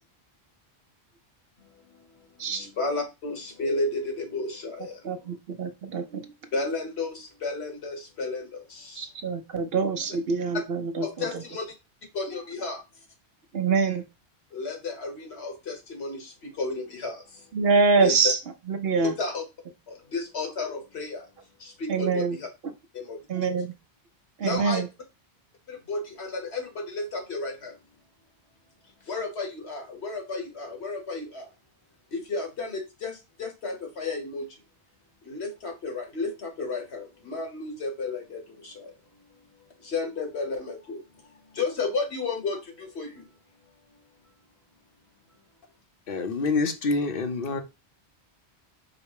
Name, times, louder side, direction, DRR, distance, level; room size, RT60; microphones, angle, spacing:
voice 1, 2.5-4.8 6.5-7.1 7.4-8.4 11.0-11.6 12.1-12.8 14.5-16.2 16.6-17.1 18.0-18.1 19.0-19.4 20.1-21.2 21.8-22.2 24.4-24.8 25.9-27.7 29.1-31.5 32.1-33.1 33.4-34.4 35.3-38.4 39.9-41.0 41.6-42.6 42.9-43.1, left 3 dB, 75° left, 1.5 m, -32 dB
voice 2, 5.0-6.2 8.9-11.4 13.5-14.0 17.5-18.4 18.7-19.1 21.9-22.4 23.3-23.7 24.4-24.9, right 4 dB, 65° right, 0.9 m, -25 dB
voice 3, 46.1-47.6, left 3 dB, 60° left, 0.8 m, -26 dB
5.0 x 2.1 x 4.7 m
omnidirectional pair, 1.1 m